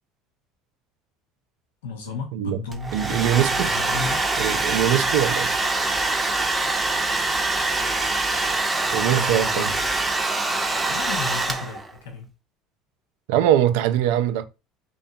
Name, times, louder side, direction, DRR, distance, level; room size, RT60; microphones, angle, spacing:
voice 1, 1.8-4.2 9.1-9.8 10.9-12.3, left 4 dB, 90° left, 0.7 m, -34 dB
Domestic sounds home sounds, 2.7-11.9, right 2 dB, 15° right, 0.6 m, -24 dB
voice 2, 2.9-3.7 4.4-5.6 8.9-9.7 13.3-14.5, right 11 dB, 75° right, 0.3 m, -22 dB
2.5 x 2.2 x 2.7 m
supercardioid pair, 85°, 0 cm